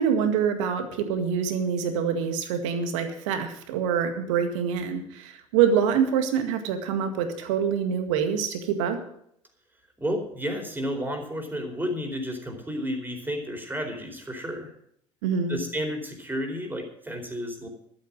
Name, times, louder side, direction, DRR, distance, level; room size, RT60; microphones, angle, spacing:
voice 1, 0.0-9.0 15.2-15.6, right 7 dB, 65° right, 7 dB, 1.9 m, -25 dB
voice 2, 10.0-14.7 15.5-17.7, equal, 10° right, 3 dB, 4.4 m, -31 dB
12.5 x 8.9 x 7.6 m, 0.70 s
figure-of-eight pair, 60°, 17 cm